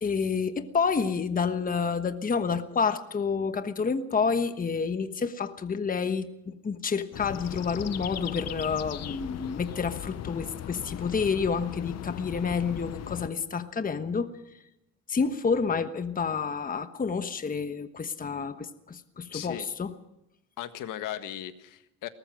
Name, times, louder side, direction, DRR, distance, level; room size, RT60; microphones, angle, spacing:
voice 1, 0.0-14.3 15.1-19.9, left 5 dB, 25° left, 10 dB, 1.2 m, -29 dB
sound 1, 7.1-13.3, left 11 dB, 55° left, 0.9 m, -38 dB
voice 2, 19.3-19.7 20.6-22.1, left 12 dB, 85° left, 10 dB, 1.6 m, -37 dB
22.0 x 19.5 x 6.3 m, 0.87 s
cardioid pair, 120°, 31 cm